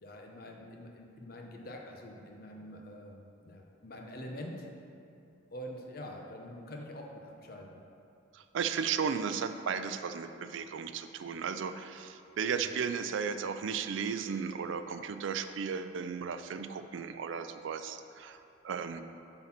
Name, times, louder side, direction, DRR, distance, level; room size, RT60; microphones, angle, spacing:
voice 1, 0.0-4.6 5.5-7.8 12.5-12.7, equal, 50° left, 1 dB, 0.8 m, -45 dB
voice 2, 8.3-18.4 18.6-19.0, right 6 dB, 80° right, 9 dB, 0.4 m, -35 dB
8.2 x 3.9 x 5.9 m, 2.7 s
head